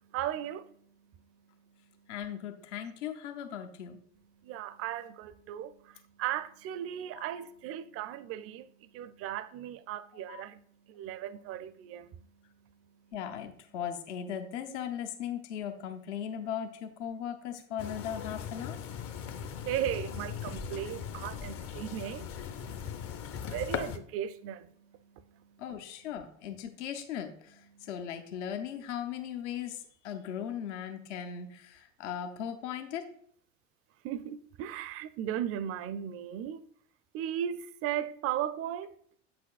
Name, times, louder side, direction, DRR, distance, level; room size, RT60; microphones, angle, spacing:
voice 1, 0.0-2.1 4.2-13.1 19.1-25.6 27.7-27.9 34.0-36.6 37.1-38.9, right 10 dB, 40° right, 0.5 m, -38 dB
voice 2, 2.1-4.0 7.2-7.4 10.3-10.4 13.1-18.8 25.6-33.0, left 9 dB, 65° left, 0.9 m, -38 dB
sound 1, 17.8-24.0, left 7 dB, 35° left, 0.7 m, -39 dB
7.7 x 6.0 x 2.4 m
hypercardioid pair, 75°, 38 cm